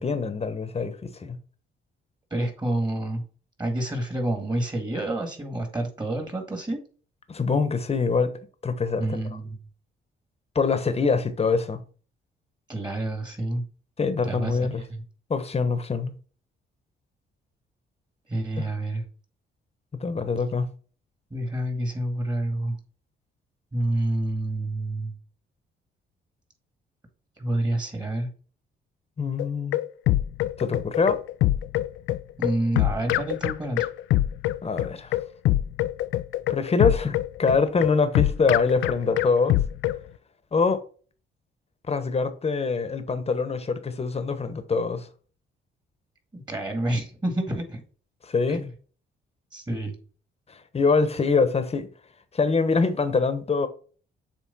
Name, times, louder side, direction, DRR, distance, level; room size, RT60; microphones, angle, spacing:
voice 1, 0.0-1.4 7.3-8.3 8.6-9.2 10.5-11.8 14.0-14.8 15.3-16.2 18.6-18.7 19.9-20.7 29.2-29.8 30.6-31.2 34.6-35.1 36.5-39.6 40.5-40.8 41.9-45.1 48.2-48.6 50.7-51.9 52.3-53.7, left 4 dB, 30° left, 1.1 m, -24 dB
voice 2, 2.3-3.2 3.6-6.8 9.0-9.6 12.7-13.6 14.3-15.0 18.3-19.1 21.3-22.8 23.7-25.2 27.4-28.3 32.4-33.9 46.3-47.8 48.5-48.7 49.5-50.0, right 1 dB, 20° right, 1.9 m, -28 dB
sound 1, 29.4-40.0, left 14 dB, 80° left, 0.4 m, -24 dB
7.6 x 3.2 x 4.2 m
cardioid pair, 90°, 20 cm